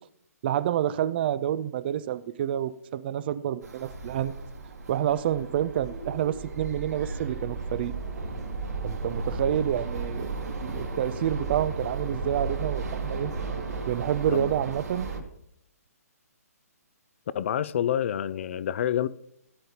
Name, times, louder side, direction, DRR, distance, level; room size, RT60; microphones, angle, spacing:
voice 1, 0.4-4.4 4.9-7.9 8.8-10.3 10.6-13.3 13.9-15.1, right 11 dB, 40° right, 0.5 m, -28 dB
sound 1, 3.6-15.2, right 3 dB, 80° right, 2.3 m, -34 dB
voice 2, 17.3-19.1, left 10 dB, 50° left, 0.5 m, -27 dB
17.0 x 9.1 x 2.9 m
figure-of-eight pair, 135°, 9 cm